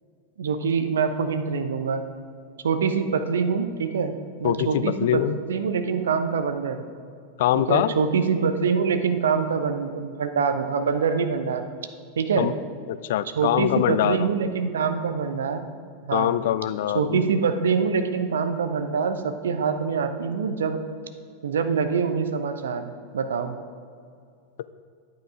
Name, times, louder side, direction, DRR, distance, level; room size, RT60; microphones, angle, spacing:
voice 1, 0.4-2.0 2.6-4.1 4.4-5.2 5.5-6.8 7.5-11.6 12.2-12.5 13.4-15.7 16.1-16.3 16.9-20.8 21.4-23.6, right 5 dB, 65° right, 8 dB, 0.8 m, -25 dB
voice 2, 4.4-5.4 7.4-7.9 12.4-12.5 12.9-14.3 16.1-17.3, left 12 dB, 55° left, 16 dB, 0.4 m, -23 dB
10.5 x 8.9 x 4.9 m, 2.3 s
figure-of-eight pair, 90°, 0 cm